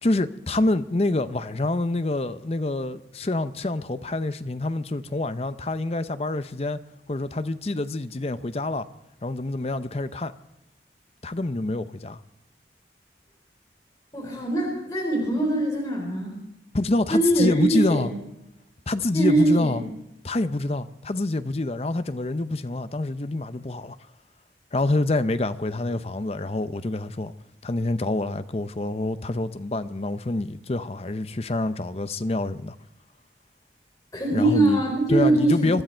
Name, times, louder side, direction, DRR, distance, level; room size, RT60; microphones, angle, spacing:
voice 1, 0.0-6.8 7.1-8.9 9.2-10.3 11.2-12.2 16.7-18.1 18.9-19.8 20.2-24.0 24.7-27.3 27.6-32.7 34.3-34.8 35.1-35.8, left 2 dB, 35° left, 0.6 m, -26 dB
voice 2, 14.1-16.3 17.1-18.0 19.1-19.8 34.1-35.8, right 2 dB, 20° left, 4.5 m, -22 dB
24.0 x 13.0 x 4.5 m
head